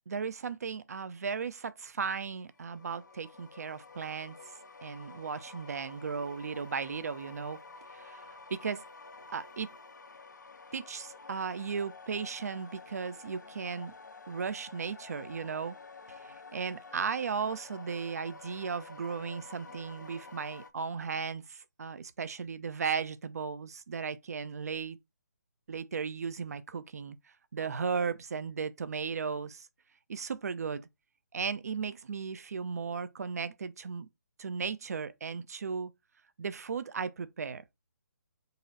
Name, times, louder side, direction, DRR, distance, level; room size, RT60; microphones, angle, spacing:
voice 1, 0.1-4.4 4.8-7.6 7.9-8.8 9.3-9.7 10.7-13.9 14.3-15.8 16.1-25.0 25.7-27.2 27.5-29.7 30.1-30.9 31.3-34.1 34.4-35.9 36.4-37.6, right 5 dB, 60° right, 0.5 m, -36 dB
sound 1, 2.5-20.7, left 4 dB, 80° left, 0.6 m, -50 dB
4.0 x 2.3 x 4.0 m
figure-of-eight pair, 140°, 9 cm